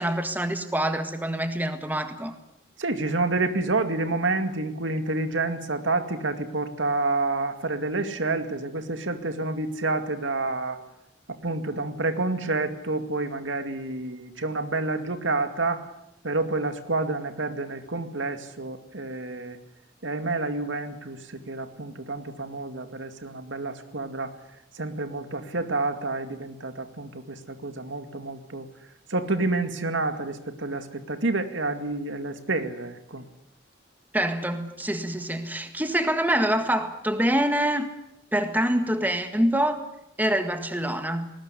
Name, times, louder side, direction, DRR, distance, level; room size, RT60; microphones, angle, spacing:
voice 1, 0.0-2.4 34.1-37.9 38.3-39.9 40.2-41.3, right 1 dB, 10° right, 7 dB, 1.7 m, -25 dB
voice 2, 2.8-10.8 11.3-15.8 16.2-19.6 20.0-24.3 24.7-28.7 29.1-33.2, right 2 dB, 90° right, 8 dB, 2.3 m, -29 dB
20.5 x 19.0 x 9.8 m, 0.82 s
head